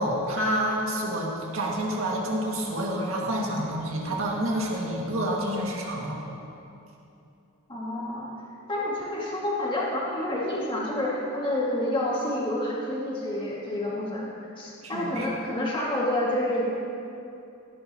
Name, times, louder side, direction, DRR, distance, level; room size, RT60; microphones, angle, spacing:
voice 1, 0.0-6.2 14.8-15.3, right 1 dB, 70° right, -3 dB, 2.1 m, -28 dB
voice 2, 7.7-8.3 8.7-14.3 14.6-16.6, left 1 dB, 25° left, -5 dB, 2.1 m, -28 dB
17.0 x 10.5 x 3.0 m, 2.8 s
head